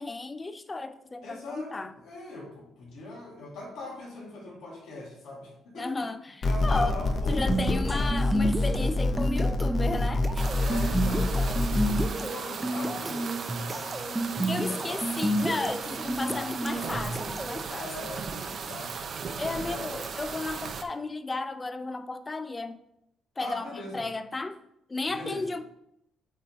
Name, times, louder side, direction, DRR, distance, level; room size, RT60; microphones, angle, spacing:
voice 1, 0.0-1.9 5.8-7.0 7.3-10.5 14.5-17.9 19.4-22.8 23.4-23.7 23.9-24.6 24.9-25.7, left 3 dB, 25° left, 0.5 m, -34 dB
voice 2, 1.2-6.1 6.4-8.2 10.6-15.1 16.4-17.0 17.7-19.1 19.5-20.2 23.4-24.1 25.1-25.5, left 2 dB, 80° left, 2.5 m, -41 dB
sound 1, 6.4-12.1, left 2 dB, 50° left, 0.8 m, -26 dB
sound 2, 7.4-17.6, right 1 dB, 15° right, 0.7 m, -31 dB
sound 3, 10.4-20.8, right 5 dB, 55° right, 0.7 m, -37 dB
8.2 x 3.8 x 4.1 m
cardioid pair, 90°, 0 cm